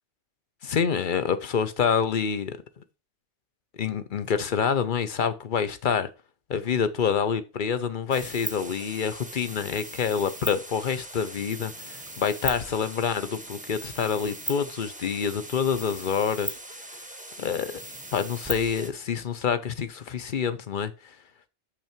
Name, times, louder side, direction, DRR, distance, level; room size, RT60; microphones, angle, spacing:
voice 1, 0.6-2.6 3.8-6.1 6.5-16.6 17.4-17.7 18.1-20.9, left 7 dB, 50° left, 0.9 m, -27 dB
sound 1, 8.1-18.9, right 2 dB, 10° right, 0.8 m, -39 dB
6.7 x 6.1 x 4.4 m
omnidirectional pair, 1.2 m